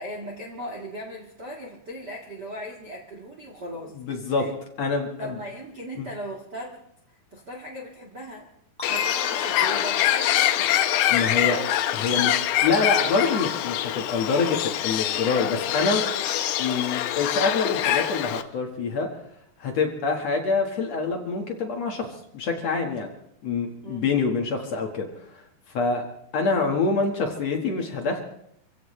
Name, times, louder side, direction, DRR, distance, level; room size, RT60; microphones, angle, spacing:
voice 1, 0.0-3.9 4.4-4.5 5.2-6.8 7.3-8.4 8.9-10.7 11.3-11.7 12.1-12.4 23.8-24.1, equal, 45° right, -1 dB, 1.4 m, -38 dB
voice 2, 3.9-4.4 4.8-5.4 6.0-6.1 11.1-11.6 11.9-16.0 16.6-19.1 19.6-23.1 23.4-25.4 25.7-26.0 26.3-28.2, left 4 dB, 55° left, 2 dB, 2.0 m, -26 dB
Bird, 8.8-18.4, left 12 dB, 80° left, 2.2 m, -24 dB
sound 1, 8.8-14.2, left 3 dB, 5° left, 0.8 m, -39 dB
27.0 x 16.0 x 3.3 m, 0.74 s
omnidirectional pair, 4.9 m